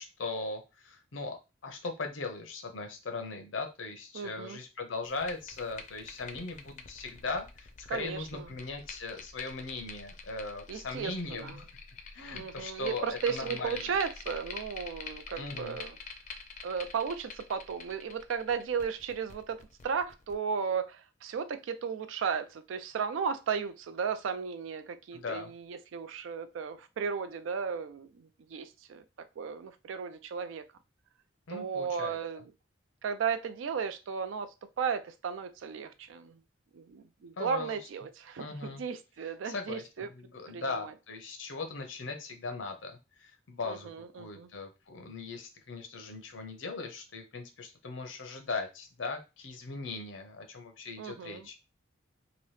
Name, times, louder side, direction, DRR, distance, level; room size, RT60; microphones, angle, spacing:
voice 1, 0.0-11.7 12.1-13.9 15.3-15.8 25.1-25.5 31.5-32.2 37.4-37.8 38.4-38.8 39.4-51.6, left 3 dB, 85° left, 0.7 m, -39 dB
voice 2, 4.1-4.6 7.9-8.5 10.7-11.6 12.3-16.0 16.6-29.0 29.4-30.6 31.5-32.4 33.0-36.4 36.7-40.1 40.5-40.9 43.6-44.5 51.0-51.5, right 6 dB, 85° right, 0.4 m, -35 dB
sound 1, 5.0-20.3, left 5 dB, 40° left, 0.4 m, -46 dB
2.9 x 2.7 x 3.2 m
head